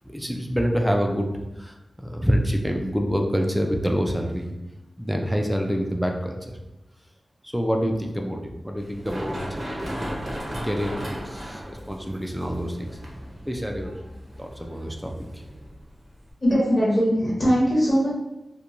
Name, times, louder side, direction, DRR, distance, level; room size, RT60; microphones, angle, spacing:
voice 1, 0.1-4.5 5.0-6.6 7.4-9.6 10.6-12.9 13.5-13.9 14.4-15.4, equal, ahead, 2 dB, 0.3 m, -26 dB
Run, 8.8-16.3, equal, 35° right, 0.7 m, -36 dB
voice 2, 16.4-18.1, equal, 30° left, -8 dB, 0.8 m, -20 dB
2.9 x 2.2 x 2.5 m, 0.96 s
wide cardioid pair, 100°, 0 cm